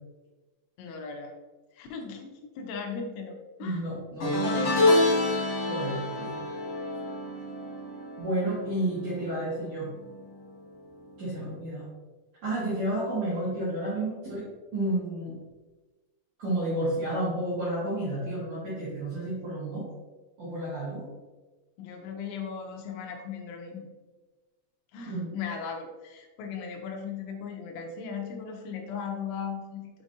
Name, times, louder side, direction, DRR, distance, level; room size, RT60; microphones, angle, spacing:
voice 1, 0.8-1.3 1.7-2.3 2.6-3.8 21.8-23.9 24.9-29.9, left 6 dB, 80° left, 2 dB, 3.0 m, -37 dB
voice 2, 3.6-4.7 5.7-6.3 8.2-9.9 11.2-11.9 12.4-14.4 14.7-15.3 16.4-19.8 20.4-21.0 25.1-25.3, right 1 dB, 60° right, -9 dB, 2.2 m, -31 dB
sound 1, 4.2-9.6 9.9-10.2 11.5-11.6, left 2 dB, 50° left, 1.9 m, -27 dB
7.2 x 4.9 x 2.7 m, 1.2 s
omnidirectional pair, 5.8 m